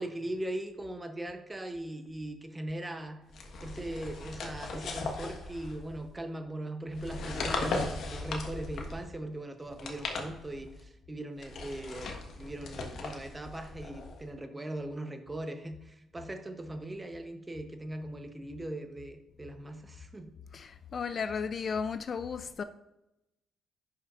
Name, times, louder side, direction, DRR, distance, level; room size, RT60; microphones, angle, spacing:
voice 1, 0.0-3.2 3.6-12.1 12.4-20.3, right 1 dB, 15° right, 0.8 m, -40 dB
sound 1, 3.3-6.1 6.9-9.1 9.7-10.8 11.4-14.2, left 3 dB, 65° left, 1.3 m, -38 dB
voice 2, 20.5-22.6, left 6 dB, 50° left, 0.4 m, -34 dB
10.5 x 5.6 x 2.5 m
cardioid pair, 90°, 0 cm